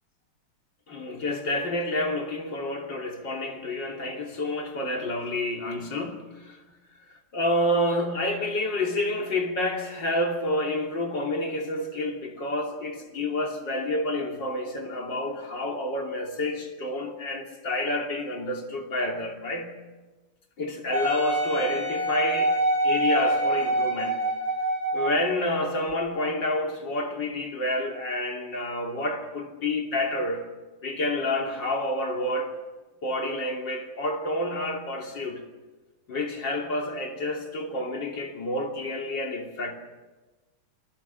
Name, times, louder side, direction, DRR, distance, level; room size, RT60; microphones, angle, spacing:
voice 1, 0.9-6.6 7.3-19.7 20.6-22.6 22.8-24.2 24.9-30.4 30.8-32.6 33.0-35.4 36.1-39.7, left 1 dB, 55° left, 3.6 m, -29 dB
Wind instrument woodwind instrument, 20.9-25.2 25.9-26.0, right 1 dB, 45° right, 8.7 m, -25 dB
28.0 x 19.5 x 7.4 m
omnidirectional pair, 2.4 m